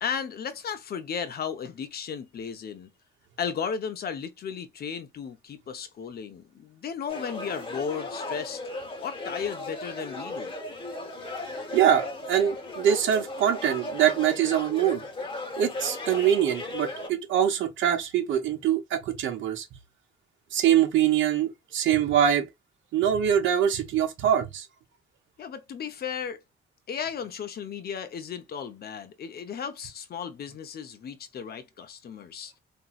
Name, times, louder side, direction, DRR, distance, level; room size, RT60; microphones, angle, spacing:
voice 1, 0.0-2.9 3.4-8.6 9.0-10.6 25.4-26.4 26.9-32.5, left 7 dB, 50° left, 0.6 m, -35 dB
sound 1, 7.1-17.1, left 2 dB, 25° left, 0.9 m, -36 dB
voice 2, 11.7-15.0 15.6-19.6 20.5-22.5 22.9-24.6, right 9 dB, 75° right, 0.7 m, -24 dB
2.9 x 2.6 x 2.3 m
cardioid pair, 90°, 20 cm